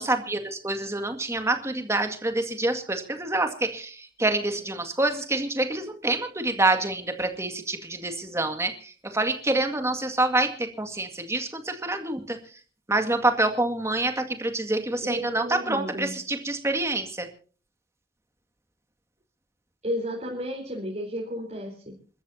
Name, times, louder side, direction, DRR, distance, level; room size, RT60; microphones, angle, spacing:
voice 1, 0.0-12.4 12.9-17.3, right 2 dB, 15° right, 6 dB, 2.1 m, -27 dB
voice 2, 15.0-16.1 19.8-21.9, equal, 40° right, -2 dB, 4.3 m, -33 dB
28.5 x 13.5 x 2.8 m, 0.40 s
head